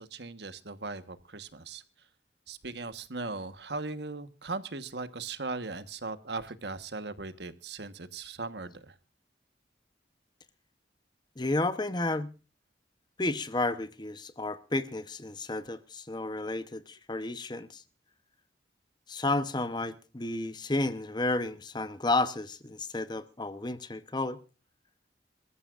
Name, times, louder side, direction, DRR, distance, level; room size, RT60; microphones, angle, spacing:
voice 1, 0.0-1.8 2.5-8.9, right 3 dB, 70° right, 1.4 m, -38 dB
voice 2, 11.4-12.3 13.2-17.8 19.1-24.4, left 2 dB, 25° left, 0.9 m, -32 dB
27.0 x 14.0 x 2.5 m
head